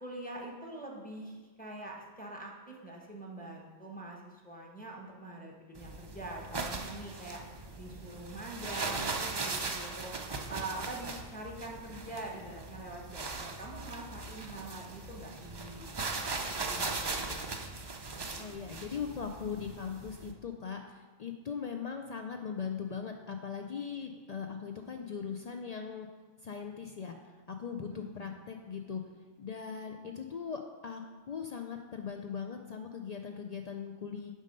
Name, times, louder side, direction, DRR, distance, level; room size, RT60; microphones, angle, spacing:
voice 1, 0.0-7.4 7.8-10.1 10.5-16.3 16.7-17.6 28.0-28.3, right 2 dB, 10° left, -1 dB, 0.9 m, -44 dB
sound 1, 5.7-20.3, right 3 dB, 40° right, 0.4 m, -39 dB
voice 2, 18.4-26.1 26.4-27.2 27.5-29.0 29.4-34.3, left 6 dB, 75° left, 4 dB, 0.3 m, -39 dB
7.3 x 5.3 x 5.3 m, 1.4 s
omnidirectional pair, 1.2 m